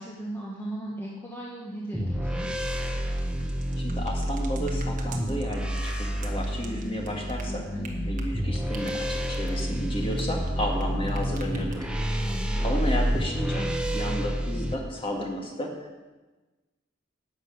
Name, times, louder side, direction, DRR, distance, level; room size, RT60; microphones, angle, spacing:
voice 1, 0.0-2.5 7.7-8.2 12.0-12.8, right 1 dB, 10° left, -4 dB, 1.3 m, -37 dB
sound 1, 1.9-14.7, equal, 5° right, 0.8 m, -29 dB
sound 2, 3.1-10.8 11.1-12.1, right 5 dB, 40° right, 1.4 m, -46 dB
voice 2, 3.8-7.7 8.1-11.9 12.6-15.9, equal, 25° left, 0 dB, 1.9 m, -32 dB
11.5 x 6.3 x 8.1 m, 1.2 s
head